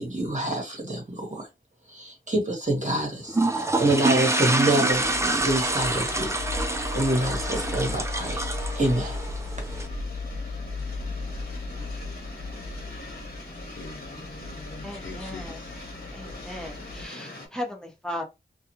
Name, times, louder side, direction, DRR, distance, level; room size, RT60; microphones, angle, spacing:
voice 1, 0.0-1.5 1.9-5.0 5.4-6.3 6.9-8.4 8.7-9.2, right 1 dB, 40° right, 1.2 m, -26 dB
sound 1, 3.3-9.9, right 2 dB, 15° right, 0.5 m, -27 dB
sound 2, 4.6-17.5, left 2 dB, 50° left, 1.2 m, -41 dB
sound 3, 4.9-17.0, left 3 dB, 65° right, 0.8 m, -36 dB
voice 2, 13.6-15.7, left 3 dB, 75° left, 0.7 m, -44 dB
voice 3, 14.8-15.6 16.1-18.2, left 1 dB, 5° left, 1.1 m, -36 dB
2.4 x 2.4 x 2.9 m
wide cardioid pair, 60°, 20 cm